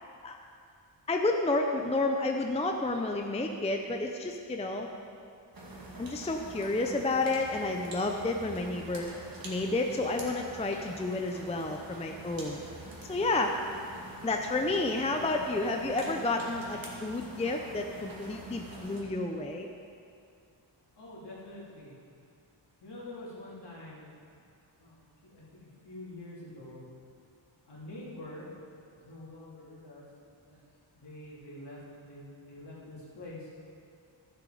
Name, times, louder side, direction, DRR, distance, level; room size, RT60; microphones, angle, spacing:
voice 1, 1.1-4.9 6.0-9.1 9.4-12.6 13.1-13.6 14.2-19.7, left 2 dB, 15° left, 3 dB, 0.5 m, -30 dB
sound 1, 5.5-19.0, right 1 dB, 45° right, 2.1 m, -46 dB
voice 2, 21.0-21.9 22.8-24.1 24.8-26.8 27.7-28.5 29.0-30.0 30.5-30.6 30.9-33.5, left 1 dB, 60° left, -6 dB, 3.1 m, -46 dB
13.0 x 7.8 x 5.1 m, 2.4 s
wide cardioid pair, 145°, 47 cm